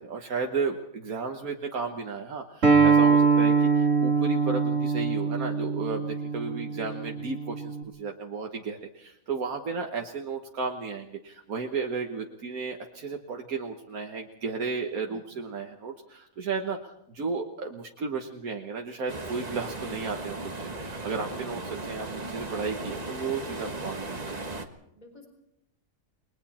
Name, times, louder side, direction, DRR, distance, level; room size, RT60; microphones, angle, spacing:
voice 1, 0.0-24.2, right 4 dB, 80° right, 2 dB, 1.8 m, -34 dB
Acoustic guitar, 2.6-7.8, right 5 dB, 60° right, 2.8 m, -23 dB
sound 1, 19.1-24.7, right 2 dB, 30° right, 1.5 m, -36 dB
voice 2, 21.3-21.6 24.9-25.3, left 2 dB, 30° left, 3 dB, 4.0 m, -51 dB
29.5 x 21.0 x 4.3 m, 0.80 s
omnidirectional pair, 1.5 m